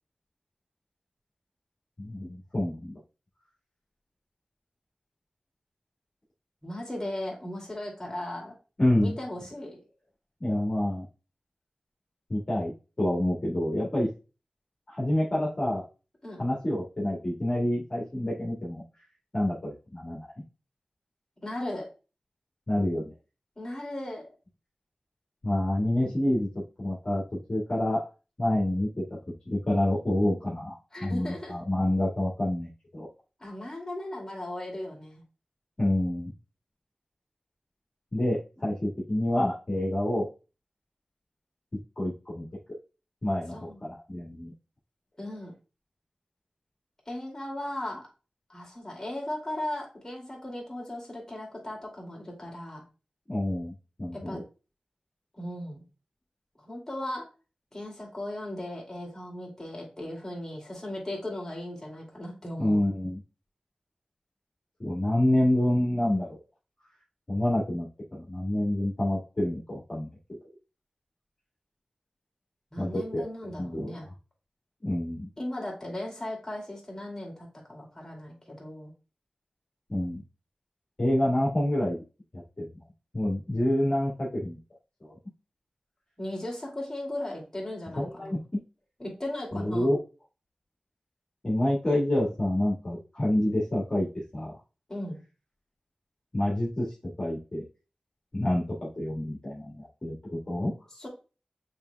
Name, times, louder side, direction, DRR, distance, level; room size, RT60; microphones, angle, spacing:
voice 1, 2.0-2.9 8.8-9.2 10.4-11.0 12.3-12.7 13.0-14.1 14.9-15.8 16.4-18.8 19.3-20.3 22.7-23.1 25.4-26.5 26.8-27.2 27.5-28.0 28.4-29.2 29.5-33.1 35.8-36.3 38.1-40.3 42.0-42.5 43.2-44.5 53.3-53.7 54.0-54.4 62.6-63.2 64.8-66.4 67.3-67.9 68.1-70.1 72.8-73.2 73.6-73.9 74.8-75.3 79.9-80.2 81.0-82.0 82.3-82.7 83.1-84.6 85.0-85.1 88.0-88.6 89.5-90.0 91.4-94.1 94.3-94.5 96.3-96.9 97.2-97.6 98.3-98.6 99.0-100.1 100.5-100.7, left 1 dB, 45° left, -6 dB, 1.8 m, -27 dB
voice 2, 6.6-8.5 9.0-9.8 16.2-16.5 21.4-21.9 23.6-24.2 30.9-31.5 33.4-35.2 43.5-43.8 45.2-45.5 47.1-48.0 48.5-52.8 54.1-54.4 55.3-55.8 56.6-57.3 57.7-62.8 72.7-74.1 75.4-78.9 86.2-88.4 89.0-89.9 94.9-95.2 100.9-101.1, left 1 dB, 20° left, -2 dB, 2.4 m, -37 dB
7.0 x 3.3 x 2.2 m, 0.32 s
wide cardioid pair, 55°, 2 cm